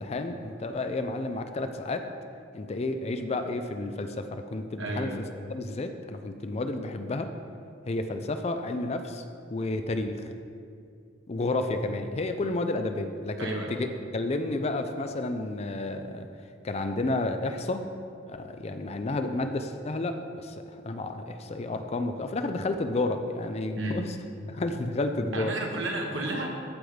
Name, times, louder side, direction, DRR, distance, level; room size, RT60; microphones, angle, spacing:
voice 1, 0.0-2.1 2.5-5.1 5.5-7.3 7.9-9.2 9.5-10.2 11.3-13.9 14.1-16.3 16.6-17.9 18.2-24.1 24.5-25.5, left 2 dB, 35° left, 7 dB, 0.4 m, -31 dB
voice 2, 4.8-5.2 13.4-13.7 23.7-24.0 25.3-26.5, right 2 dB, 80° right, 0 dB, 1.3 m, -32 dB
14.0 x 5.1 x 3.3 m, 2.4 s
head